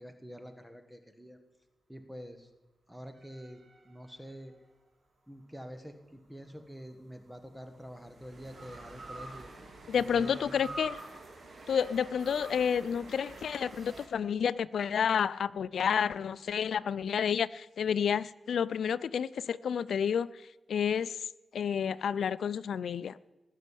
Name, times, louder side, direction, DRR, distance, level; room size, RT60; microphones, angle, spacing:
voice 1, 0.0-1.4 1.9-2.5 2.9-4.5 5.3-9.5 10.1-10.7, equal, 5° right, 7 dB, 1.4 m, -47 dB
sound 1, 3.1-4.7 6.5-14.1, right 2 dB, 60° right, 3.2 m, -48 dB
voice 2, 9.9-11.0 11.7-20.3 20.7-21.2 21.5-23.1, left 7 dB, 90° left, 17 dB, 0.4 m, -30 dB
18.5 x 6.5 x 9.9 m, 1.2 s
wide cardioid pair, 100°, 0 cm